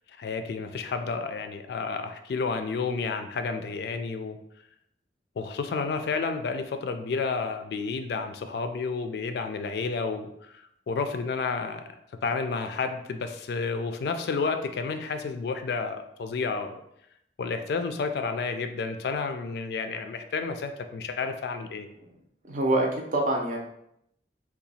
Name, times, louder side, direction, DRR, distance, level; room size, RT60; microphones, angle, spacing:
voice 1, 0.2-4.4 5.4-11.8 12.2-16.8 17.4-21.9, left 4 dB, 65° left, 7 dB, 0.3 m, -31 dB
voice 2, 22.5-23.6, right 1 dB, 45° right, 1 dB, 0.6 m, -25 dB
2.8 x 2.3 x 4.0 m, 0.76 s
head